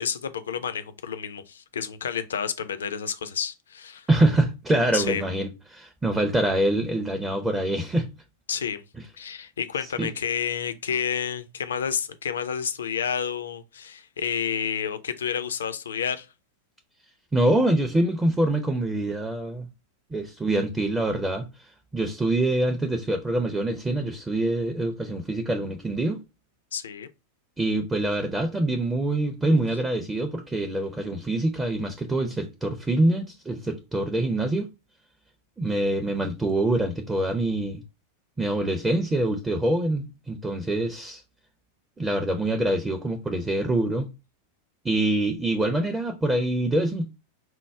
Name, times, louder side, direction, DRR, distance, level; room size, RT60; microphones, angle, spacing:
voice 1, 0.0-4.1 4.9-5.2 8.5-8.8 9.2-16.3 26.7-27.1, left 7 dB, 65° left, 0.4 m, -30 dB
voice 2, 4.1-8.1 9.8-10.1 17.3-19.7 20.1-26.2 27.6-34.7 35.6-37.8 38.4-41.2 42.0-44.1 44.8-47.1, right 1 dB, 10° right, 0.4 m, -25 dB
4.5 x 2.0 x 3.3 m
figure-of-eight pair, 90°, 0 cm